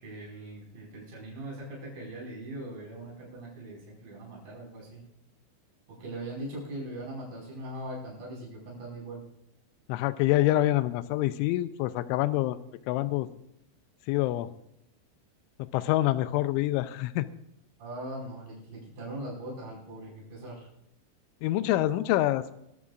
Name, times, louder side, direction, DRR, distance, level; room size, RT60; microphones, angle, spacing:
voice 1, 0.0-5.0 5.9-9.2 17.8-20.7, right 1 dB, 45° right, -4 dB, 7.0 m, -40 dB
voice 2, 9.9-12.6 12.9-13.3 14.1-14.5 15.6-17.3 21.4-22.4, left 15 dB, 90° left, 13 dB, 3.1 m, -26 dB
23.0 x 12.5 x 2.5 m, 0.81 s
omnidirectional pair, 5.4 m